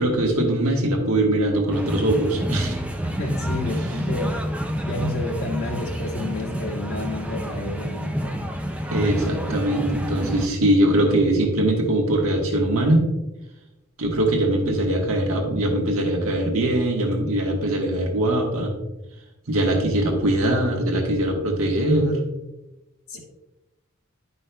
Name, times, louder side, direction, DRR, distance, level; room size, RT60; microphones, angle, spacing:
voice 1, 0.0-2.8 8.9-13.1 14.0-18.7 19.5-22.2, right 1 dB, 85° right, 0 dB, 1.4 m, -21 dB
sound 1, 1.7-10.5, equal, 5° right, 0.5 m, -28 dB
voice 2, 3.2-4.4 4.8-8.4 23.1-23.2, left 2 dB, 85° left, -4 dB, 2.2 m, -31 dB
11.0 x 5.4 x 2.2 m, 0.99 s
head